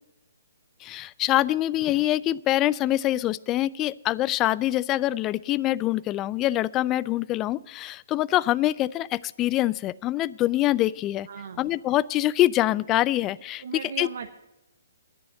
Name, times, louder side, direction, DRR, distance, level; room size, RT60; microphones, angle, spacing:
voice 1, 0.8-11.3 11.6-14.1, left 15 dB, 25° left, 21 dB, 0.3 m, -25 dB
voice 2, 11.3-11.7 13.6-14.4, right 6 dB, 60° right, 6 dB, 0.9 m, -37 dB
10.5 x 9.5 x 7.5 m, 0.97 s
hypercardioid pair, 135°, 0 cm